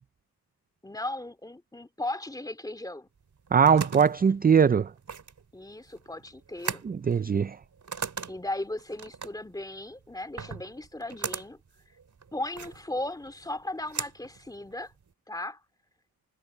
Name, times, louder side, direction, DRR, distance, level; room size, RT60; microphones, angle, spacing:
voice 1, 0.8-3.1 5.5-6.9 8.3-11.6 12.3-14.9 15.3-15.6, left 1 dB, 10° left, 2.4 m, -36 dB
sound 1, 3.2-15.1, right 6 dB, 50° right, 4.3 m, -40 dB
voice 2, 3.5-4.9 6.8-7.6, right 7 dB, 25° right, 0.4 m, -21 dB
wide cardioid pair, 155°, 37 cm